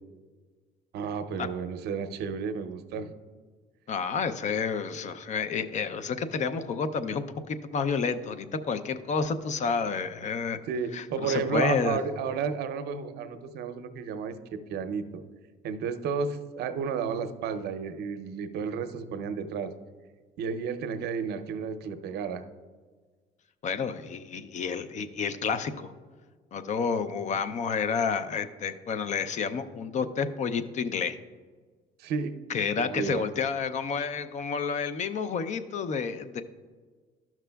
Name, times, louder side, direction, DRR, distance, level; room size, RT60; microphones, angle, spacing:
voice 1, 0.9-3.1 10.7-15.2 15.6-19.7 20.4-22.5 32.0-33.2, right 6 dB, 75° right, 10 dB, 0.6 m, -32 dB
voice 2, 3.9-10.6 10.9-12.0 23.6-25.9 26.5-31.2 32.5-36.4, left 5 dB, 45° left, 11 dB, 0.5 m, -30 dB
12.5 x 5.9 x 2.3 m, 1.5 s
cardioid pair, 110°, 17 cm